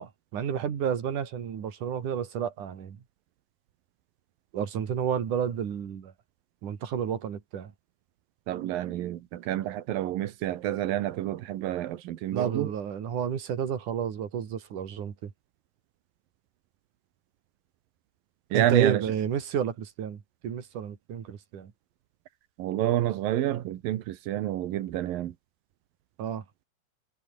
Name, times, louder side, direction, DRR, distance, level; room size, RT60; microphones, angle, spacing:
voice 1, 0.0-3.0 4.5-6.1 6.6-7.7 12.3-15.3 18.5-21.7 26.2-26.5, right 8 dB, 45° right, 3.4 m, -31 dB
voice 2, 8.5-12.7 18.5-19.1 22.6-25.3, right 13 dB, 70° right, 2.2 m, -28 dB
omnidirectional pair, 5.9 m